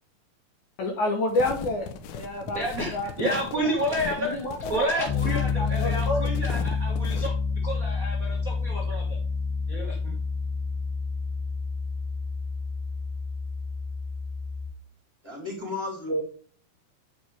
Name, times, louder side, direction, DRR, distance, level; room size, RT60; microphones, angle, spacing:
voice 1, 0.8-3.7 4.2-5.1 5.3-6.3, left 2 dB, 65° left, 2 dB, 2.2 m, -30 dB
sound 1, 1.3-7.3, left 7 dB, 80° left, 2.6 m, -39 dB
voice 2, 2.5-4.4 4.7-9.2 9.7-10.2, equal, 45° right, -1 dB, 1.1 m, -30 dB
Piano, 5.1-14.7, left 5 dB, 40° left, 2.6 m, -29 dB
voice 3, 15.2-16.2, equal, 5° right, -5 dB, 3.4 m, -31 dB
9.4 x 5.1 x 3.3 m, 0.43 s
omnidirectional pair, 4.3 m